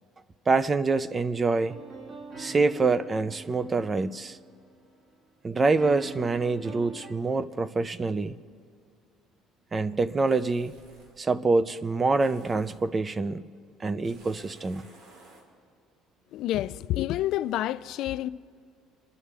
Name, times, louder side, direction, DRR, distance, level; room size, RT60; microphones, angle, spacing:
voice 1, 0.5-1.8 2.4-4.4 5.4-8.3 9.7-10.7 11.2-13.4 13.8-14.8, right 3 dB, 20° right, 0.5 m, -26 dB
sound 1, 1.7-4.9 5.8-7.1, right 3 dB, 45° right, 1.7 m, -44 dB
sound 2, 10.3-11.2 12.2-12.9 14.0-15.5, right 2 dB, 80° right, 2.7 m, -54 dB
voice 2, 16.3-18.3, left 14 dB, 65° left, 0.4 m, -28 dB
27.0 x 11.0 x 3.4 m
cardioid pair, 125°, 0 cm